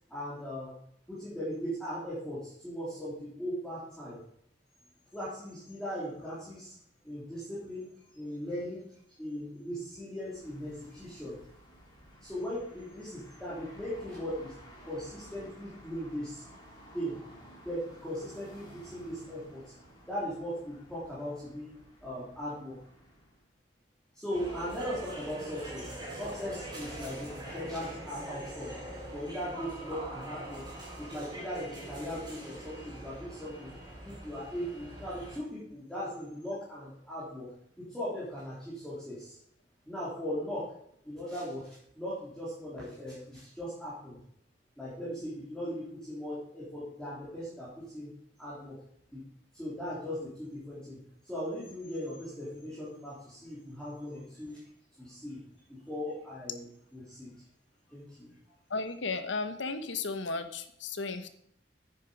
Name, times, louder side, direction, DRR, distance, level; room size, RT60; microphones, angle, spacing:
voice 1, 0.1-0.7 1.1-4.2 5.1-6.8 7.0-8.8 9.2-11.4 12.2-14.5 14.8-16.4 16.9-17.1 17.6-19.7 20.1-21.7 22.0-22.8 24.1-28.7 29.1-30.6 31.0-33.7 34.0-37.5 37.8-39.4 39.9-40.7 41.0-44.2 44.8-48.1 48.4-48.8 49.1-49.2 49.5-51.0 51.2-54.6 55.0-55.4 55.9-56.7 56.9-57.3 57.9-58.3, equal, 5° left, -11 dB, 3.8 m, -38 dB
sound 1, 10.2-23.4, equal, 20° left, 3.2 m, -54 dB
sound 2, 24.3-35.4, right 1 dB, 20° right, 5.4 m, -43 dB
voice 2, 58.7-61.3, left 3 dB, 85° left, 9 dB, 1.1 m, -34 dB
9.8 x 9.4 x 5.3 m, 0.70 s
head